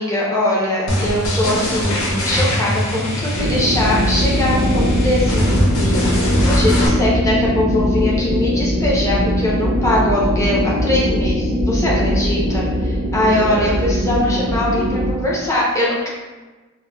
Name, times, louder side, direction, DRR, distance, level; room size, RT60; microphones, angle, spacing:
voice 1, 0.0-6.1 6.4-16.1, left 1 dB, 15° left, -6 dB, 0.6 m, -21 dB
sound 1, 0.9-6.9, left 1 dB, 65° left, 0.7 m, -22 dB
sound 2, 3.3-15.1, equal, 60° right, 0.5 m, -20 dB
4.3 x 2.2 x 2.2 m, 1.2 s
head